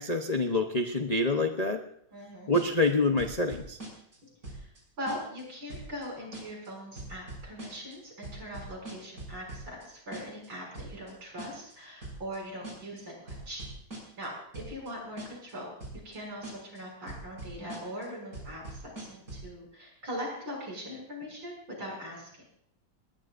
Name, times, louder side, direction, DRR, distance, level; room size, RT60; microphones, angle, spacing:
voice 1, 0.0-1.8 2.5-3.8, left 2 dB, 70° left, 3 dB, 0.3 m, -26 dB
voice 2, 2.1-2.5 4.5-4.7 5.0-13.6 14.2-15.7 16.0-22.3, equal, 65° right, -1 dB, 7.5 m, -41 dB
sound 1, 2.5-2.9 3.2-4.2 4.4-4.8 5.1-5.4 5.7-6.1 6.3-6.7 7.0-8.0 8.2-9.9 10.1-10.5 10.8-11.1 11.4-11.7 12.0-12.4 12.6-13.0 13.3-14.3 14.5-14.9 15.2-15.5 15.8-16.2 16.4-16.8 17.1-18.1 18.3-19.5, right 2 dB, 40° right, 6.4 m, -42 dB
20.5 x 19.0 x 2.6 m, 0.69 s
omnidirectional pair, 2.3 m